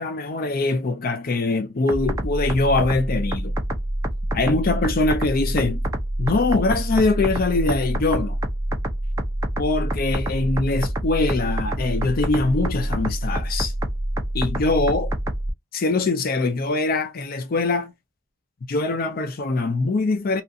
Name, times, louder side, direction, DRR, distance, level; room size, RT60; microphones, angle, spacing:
voice 1, 0.0-3.5 4.3-5.8 6.2-8.4 9.6-13.7 14.3-15.1 15.7-17.9 18.7-20.4, left 3 dB, 45° left, 0.4 m, -23 dB
sound 1, 1.9-15.5, right 1 dB, 15° right, 0.5 m, -26 dB
2.8 x 2.4 x 2.6 m
head